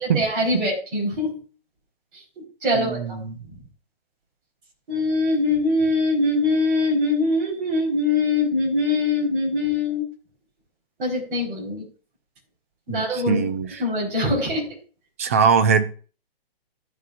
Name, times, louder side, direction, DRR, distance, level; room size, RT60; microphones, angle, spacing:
voice 1, 0.0-1.3 2.1-3.6 4.9-10.1 11.0-11.8 12.9-13.4 13.8-14.7, left 2 dB, 60° right, 4.6 m, -23 dB
voice 2, 2.8-3.4 12.9-13.7 15.2-15.8, right 6 dB, 15° right, 0.3 m, -21 dB
14.5 x 5.5 x 2.6 m
hypercardioid pair, 135°, 30 cm